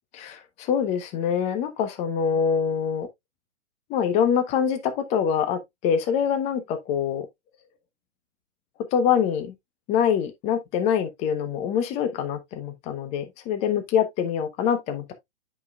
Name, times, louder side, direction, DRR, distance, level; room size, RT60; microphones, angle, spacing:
voice 1, 0.1-3.1 3.9-7.3 8.9-9.5 9.9-15.2, left 8 dB, 20° left, 0.8 m, -25 dB
9.3 x 5.3 x 2.3 m
hypercardioid pair, 130°, 36 cm